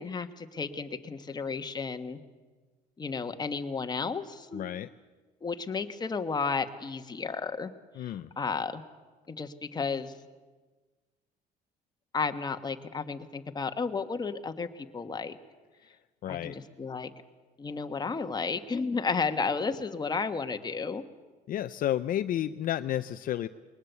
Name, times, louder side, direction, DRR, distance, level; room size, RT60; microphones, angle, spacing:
voice 1, 0.0-2.2 3.0-4.7 5.4-7.7 8.0-8.8 9.3-10.1 12.1-15.4 16.3-17.1 17.6-21.0, left 4 dB, 25° left, 8 dB, 1.3 m, -33 dB
voice 2, 4.5-4.9 8.0-8.3 16.2-16.6 21.5-23.5, left 12 dB, 55° left, 11 dB, 0.6 m, -31 dB
21.0 x 19.5 x 8.2 m, 1.3 s
cardioid pair, 110°, 17 cm